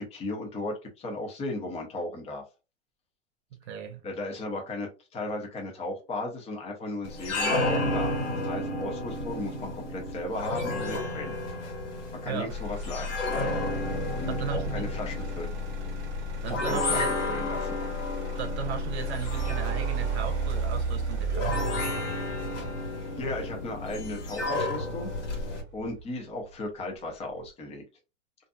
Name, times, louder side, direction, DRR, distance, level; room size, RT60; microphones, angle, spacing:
voice 1, 0.0-2.4 4.0-8.1 8.4-11.4 12.2-13.2 14.1-15.5 16.5-17.8 23.2-25.1 25.7-27.8, left 2 dB, 15° left, 0.7 m, -36 dB
voice 2, 3.5-4.0 12.3-12.5 14.3-14.9 16.4-17.1 18.4-21.6, right 8 dB, 60° right, 0.8 m, -36 dB
sound 1, 7.0-25.6, left 2 dB, 70° left, 1.3 m, -32 dB
Motor vehicle (road), 12.5-26.5 27.0-27.5, right 2 dB, 30° right, 0.9 m, -34 dB
2.6 x 2.4 x 2.3 m
hypercardioid pair, 130°, 37 cm